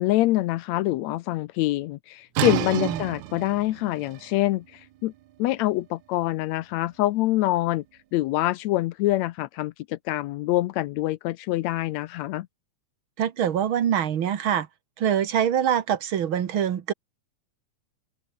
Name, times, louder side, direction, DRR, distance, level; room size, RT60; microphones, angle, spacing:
voice 1, 0.0-4.6 5.0-5.1 5.4-7.8 8.1-12.5, left 16 dB, 80° left, 1.8 m, -25 dB
sound 1, 2.3-8.0, right 14 dB, 75° right, 2.3 m, -33 dB
voice 2, 13.2-14.7 15.0-16.9, right 9 dB, 50° right, 1.8 m, -24 dB
omnidirectional pair, 3.5 m